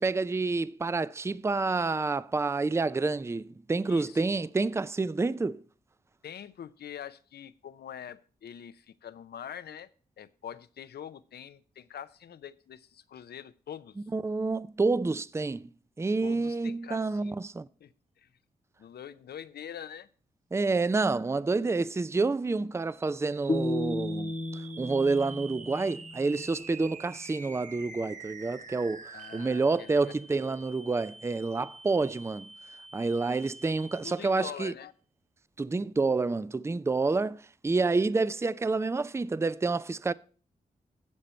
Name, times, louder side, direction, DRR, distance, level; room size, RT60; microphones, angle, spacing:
voice 1, 0.0-5.6 14.1-15.7 16.0-17.7 20.5-29.0 29.3-32.5 32.9-34.7 35.6-40.1, right 3 dB, 15° right, 0.4 m, -28 dB
voice 2, 3.8-4.2 6.2-9.9 10.2-14.0 16.2-17.4 17.8-18.3 18.8-20.1 29.1-30.1 34.0-34.9, left 9 dB, 75° left, 0.6 m, -44 dB
sound 1, 22.8-34.4, right 3 dB, 50° right, 1.1 m, -48 dB
sound 2, 23.5-26.6, left 1 dB, 30° left, 1.0 m, -34 dB
11.5 x 7.7 x 4.3 m
cardioid pair, 50°, 17 cm